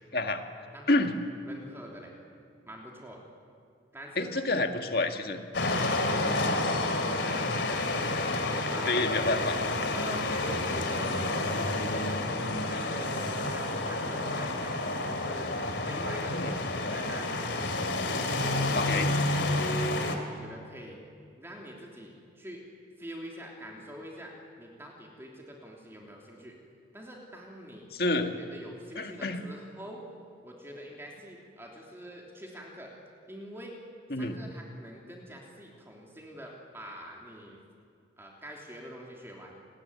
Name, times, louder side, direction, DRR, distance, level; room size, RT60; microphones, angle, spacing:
voice 1, 0.1-0.4 0.9-1.1 4.2-5.4 8.9-9.6 16.3-16.5 18.7-19.1 27.9-28.4 29.0-29.4 34.1-34.4, left 2 dB, 55° left, 5 dB, 2.0 m, -28 dB
voice 2, 1.4-2.1 2.6-3.2 3.9-4.6 5.5-8.0 8.3-9.4 9.9-12.3 12.6-15.5 15.8-17.5 18.4-18.7 19.2-21.0 21.4-22.6 23.0-26.6 26.9-28.2 28.5-30.1 30.4-32.9 33.3-33.8 34.2-37.6 38.2-39.5, equal, 15° right, -1 dB, 3.2 m, -45 dB
sound 1, 5.5-20.2, left 2 dB, 70° left, 3.0 m, -29 dB
29.0 x 20.5 x 9.7 m, 2.3 s
head